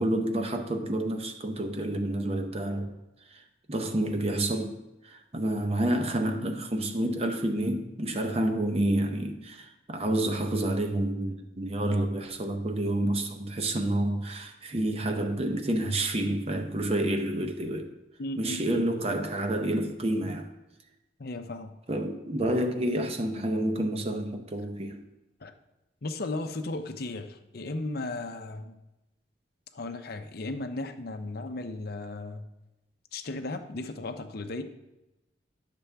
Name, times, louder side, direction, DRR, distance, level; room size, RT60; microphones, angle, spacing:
voice 1, 0.0-2.9 3.3-3.4 3.7-4.8 5.0-17.9 18.4-20.5 21.9-25.0, right 1 dB, 30° right, 0.7 m, -29 dB
voice 2, 18.2-18.8 21.2-21.8 25.4-25.5 26.0-28.7 29.7-32.5 33.1-34.6, left 2 dB, 55° left, 0.6 m, -35 dB
11.0 x 6.7 x 3.4 m
head